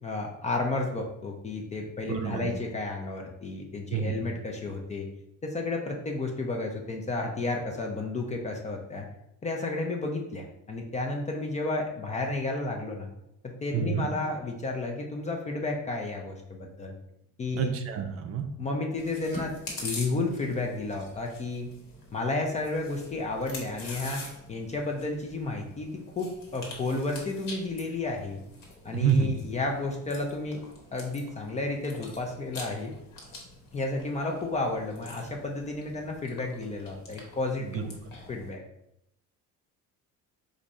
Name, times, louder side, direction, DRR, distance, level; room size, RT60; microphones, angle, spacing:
voice 1, 0.0-5.1 5.4-9.1 9.4-13.1 13.4-16.9 17.4-17.7 18.6-19.5 19.8-21.7 22.1-24.2 24.5-28.4 28.8-30.6 30.9-32.9 33.7-37.9 38.3-38.6, left 2 dB, 20° left, 1 dB, 0.4 m, -32 dB
voice 2, 2.1-2.5 3.9-4.3 13.7-14.1 17.6-18.5 28.9-29.3 37.6-37.8, right 7 dB, 45° right, 5 dB, 0.5 m, -28 dB
Chewing mastication, 18.9-38.5, left 2 dB, 70° left, 1.5 m, -45 dB
4.8 x 2.6 x 4.1 m, 0.80 s
cardioid pair, 170°, 33 cm